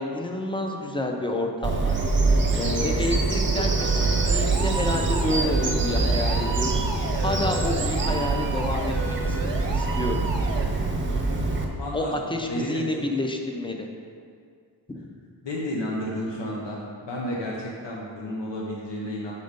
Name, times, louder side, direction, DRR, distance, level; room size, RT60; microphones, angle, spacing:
voice 1, 0.0-2.0 2.3-6.8 7.2-9.4 9.7-10.3 11.9-13.9 14.9-15.1, left 1 dB, 15° left, 3 dB, 0.4 m, -29 dB
Bird vocalization bird call bird song, 1.6-11.7, right 3 dB, 30° right, 0.6 m, -24 dB
sound 1, 3.8-10.6, right 4 dB, 90° right, 0.9 m, -34 dB
voice 2, 11.8-13.0 15.4-19.3, left 1 dB, 90° left, -3 dB, 1.0 m, -32 dB
6.6 x 4.3 x 5.2 m, 2.2 s
wide cardioid pair, 175°, 42 cm